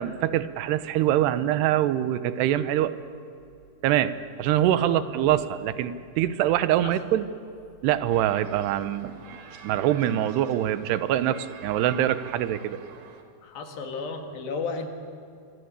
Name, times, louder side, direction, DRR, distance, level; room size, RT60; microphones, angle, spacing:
voice 1, 0.0-3.0 3.8-7.3 7.8-9.2 9.6-12.8, right 12 dB, 85° right, 13 dB, 3.0 m, -24 dB
voice 2, 4.7-5.1 6.8-7.0 13.4-14.9, left 4 dB, 65° left, 4 dB, 3.7 m, -34 dB
sound 1, 8.1-13.2, right 7 dB, 60° right, 3.1 m, -46 dB
25.5 x 25.0 x 8.3 m, 2.5 s
omnidirectional pair, 4.7 m